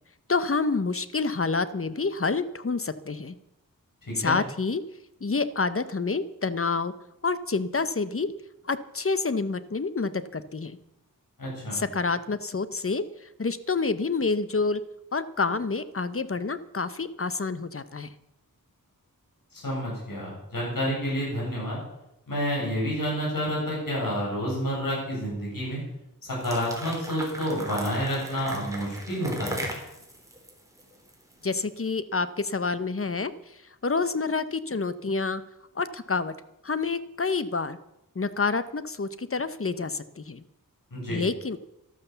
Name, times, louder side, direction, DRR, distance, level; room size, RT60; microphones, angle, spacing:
voice 1, 0.3-3.3 4.2-4.8 5.2-6.9 7.2-8.3 8.7-10.8 11.7-13.0 13.4-14.8 15.1-18.1 31.4-33.3 33.8-35.4 35.8-36.3 36.6-37.8 38.2-40.4 41.1-41.6, left 4 dB, 40° left, 14 dB, 0.9 m, -28 dB
voice 2, 4.1-4.4 11.4-11.8 19.5-21.8 22.3-25.8 26.2-29.6 40.9-41.2, equal, 75° left, -4 dB, 7.9 m, -29 dB
sound 1, 26.3-31.5, right 1 dB, 10° right, 3.6 m, -37 dB
12.5 x 12.5 x 6.9 m, 0.86 s
wide cardioid pair, 70°, 34 cm